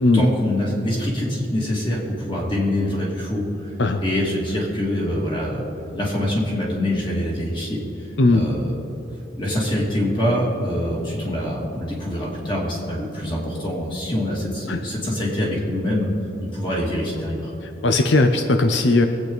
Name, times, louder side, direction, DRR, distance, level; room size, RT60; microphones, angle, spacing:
voice 1, 0.1-3.7 4.0-5.6 5.9-8.1 8.3-8.7 9.3-16.1 16.5-17.5, left 1 dB, 25° left, -4 dB, 2.8 m, -24 dB
voice 2, 17.6-19.1, left 2 dB, 80° left, 6 dB, 0.7 m, -18 dB
22.5 x 8.7 x 4.0 m, 2.9 s
head